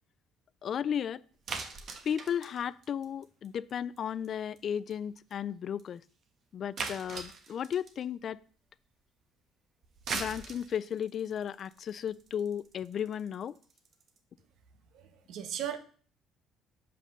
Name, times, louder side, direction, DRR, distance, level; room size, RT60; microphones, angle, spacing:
voice 1, 0.6-1.2 2.0-6.0 6.5-8.4 10.1-13.6, left 8 dB, 50° left, 0.3 m, -34 dB
sound 1, 1.5-3.7 4.0-4.3 4.6-4.7 4.9-5.0 5.3-5.4 5.8-5.9 6.8-8.0 9.8-14.2, right 4 dB, 50° right, 1.2 m, -40 dB
voice 2, 14.9-15.8, right 9 dB, 70° right, 1.0 m, -37 dB
5.5 x 5.3 x 6.4 m
cardioid pair, 95°, 0 cm